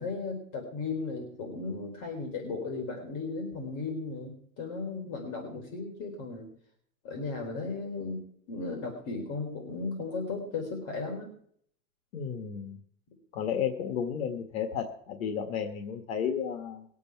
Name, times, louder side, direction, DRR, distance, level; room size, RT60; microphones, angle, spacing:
voice 1, 0.0-6.5 7.0-11.3, left 3 dB, 45° left, 2 dB, 3.9 m, -36 dB
voice 2, 12.1-12.8 13.3-16.8, left 8 dB, 85° left, 5 dB, 1.7 m, -32 dB
21.5 x 8.4 x 4.7 m, 0.63 s
supercardioid pair, 130°, 41 cm